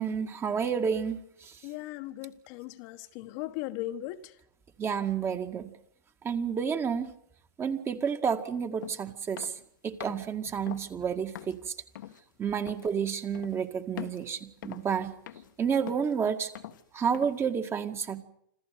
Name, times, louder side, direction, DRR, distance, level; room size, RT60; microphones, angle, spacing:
voice 1, 0.0-1.6 4.8-5.7 6.2-7.1 7.6-9.5 9.8-11.6 12.4-15.1 15.6-16.5 16.9-18.2, right 7 dB, 25° right, 2.0 m, -30 dB
voice 2, 1.6-4.3, left 15 dB, 50° left, 1.4 m, -38 dB
sound 1, 8.8-9.0 9.4-9.6 10.0-10.3 10.7-10.9 11.3-11.6 12.0-12.2 12.7-12.9 13.3-13.6 14.0-14.3 14.6-15.0 15.3-15.5 15.9-16.2 16.5-16.8 17.1-17.4, left 12 dB, 70° left, 1.5 m, -43 dB
27.5 x 13.5 x 9.6 m
hypercardioid pair, 105°, 11 cm